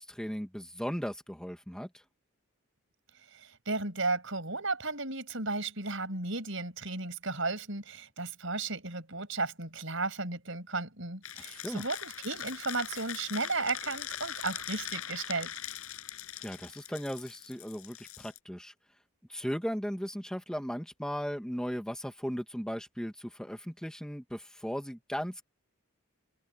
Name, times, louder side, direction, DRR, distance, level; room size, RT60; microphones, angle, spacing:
voice 1, 0.0-2.0 11.4-11.8 16.4-18.7 19.3-25.4, equal, 5° left, 2.3 m, -37 dB
voice 2, 3.3-15.5, right 3 dB, 60° right, 7.2 m, -34 dB
sound 1, 11.2-18.4, left 10 dB, 75° left, 7.2 m, -41 dB
open air
head